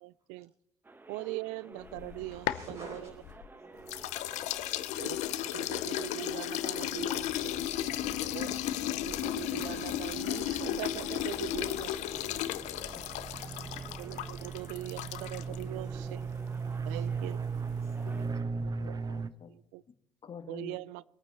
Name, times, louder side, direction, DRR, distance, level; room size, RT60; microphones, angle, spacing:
voice 1, 0.0-0.5 1.1-2.5 2.9-3.0 5.0-7.6 8.3-8.6 8.9-11.9 14.0-16.3 16.9-17.4 18.6-19.0 19.5-19.8 20.5-21.0, right 19 dB, 75° right, 0.4 m, -41 dB
sound 1, 0.8-18.2, right 2 dB, 15° right, 1.1 m, -53 dB
voice 2, 1.6-4.4 10.3-12.7 13.9-14.0 15.8-18.1, right 1 dB, 50° right, 4.8 m, -55 dB
sound 2, 1.9-3.5 3.9-15.6, left 13 dB, 65° left, 0.7 m, -34 dB
sound 3, 7.0-19.3, right 5 dB, 30° right, 0.7 m, -39 dB
voice 3, 18.0-19.5 20.2-20.8, left 6 dB, 40° left, 1.8 m, -48 dB
22.5 x 9.1 x 4.3 m
hypercardioid pair, 70°, 13 cm